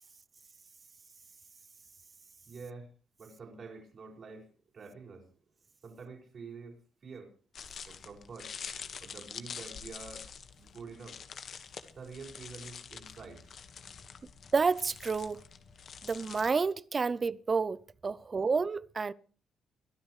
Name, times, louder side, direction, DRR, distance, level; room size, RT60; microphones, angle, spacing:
voice 1, 2.5-2.9 3.2-5.3 5.8-7.3 7.9-8.5 9.0-10.3 10.6-11.2 12.0-13.9, right 4 dB, 50° right, 5.2 m, -47 dB
sound 1, 7.5-16.5, left 7 dB, 55° left, 1.5 m, -46 dB
voice 2, 14.5-15.4 16.0-19.1, right 4 dB, 35° right, 0.6 m, -30 dB
23.5 x 12.5 x 3.2 m
cardioid pair, 90°, 0 cm